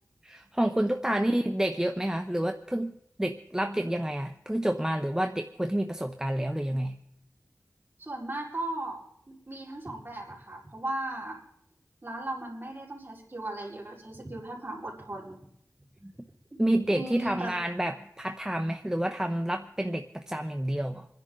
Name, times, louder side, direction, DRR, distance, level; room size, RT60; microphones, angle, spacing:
voice 1, 0.2-6.9 16.0-16.1 16.6-21.1, right 1 dB, 10° right, 6 dB, 0.8 m, -29 dB
voice 2, 8.0-11.4 12.0-15.4 16.5-16.6 16.9-17.6, right 1 dB, 35° right, -3 dB, 4.5 m, -37 dB
27.0 x 10.5 x 3.8 m, 0.76 s
wide cardioid pair, 60°, 6 cm